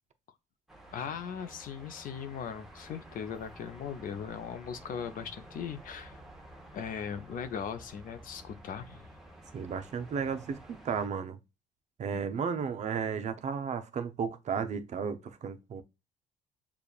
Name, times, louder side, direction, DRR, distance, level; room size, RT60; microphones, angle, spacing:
sound 1, 0.7-11.1, right 1 dB, ahead, 0.9 m, -52 dB
voice 1, 0.9-6.2 6.7-9.0 12.1-12.3, left 7 dB, 55° left, 0.6 m, -39 dB
voice 2, 9.5-11.4 12.0-15.8, right 6 dB, 45° right, 0.6 m, -34 dB
6.8 x 2.4 x 2.3 m
cardioid pair, 110°, 17 cm